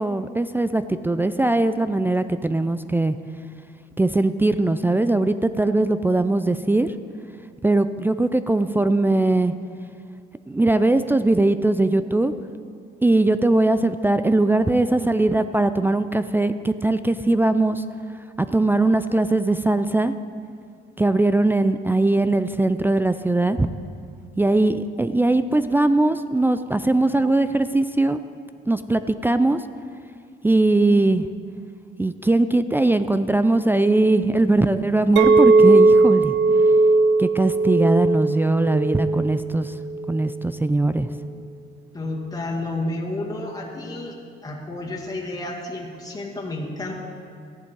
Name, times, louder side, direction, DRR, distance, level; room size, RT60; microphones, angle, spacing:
voice 1, 0.0-3.2 4.0-6.9 7.6-9.5 10.5-12.3 13.0-17.8 18.4-20.1 21.0-23.7 24.4-28.2 28.7-29.6 30.4-31.3 32.0-36.3 37.2-39.8 40.1-41.1, right 2 dB, 10° right, 11 dB, 0.4 m, -20 dB
Chink clink, 35.2-40.4, right 3 dB, 70° right, 0.8 m, -18 dB
voice 2, 41.9-46.9, left 2 dB, 20° left, -3 dB, 2.1 m, -31 dB
14.5 x 10.5 x 4.7 m, 2.3 s
cardioid pair, 90°, 20 cm